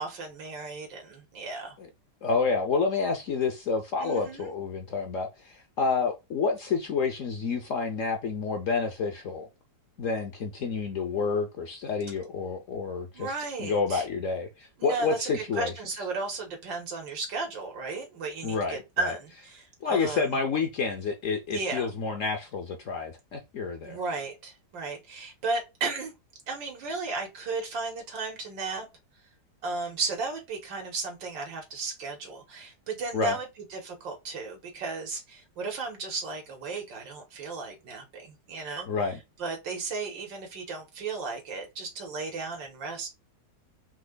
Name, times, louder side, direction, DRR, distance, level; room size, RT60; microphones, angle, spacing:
voice 1, 0.0-1.8 4.0-4.5 13.1-14.1 14.8-20.3 21.5-21.9 23.9-26.1 26.5-28.9 29.6-38.9 39.4-43.1, right 3 dB, 85° right, 2.2 m, -34 dB
voice 2, 2.2-9.5 10.0-13.3 13.6-15.7 18.4-19.1 19.8-24.0 33.1-33.4 38.9-39.2, left 4 dB, 60° left, 0.9 m, -29 dB
4.4 x 2.9 x 3.8 m
omnidirectional pair, 1.9 m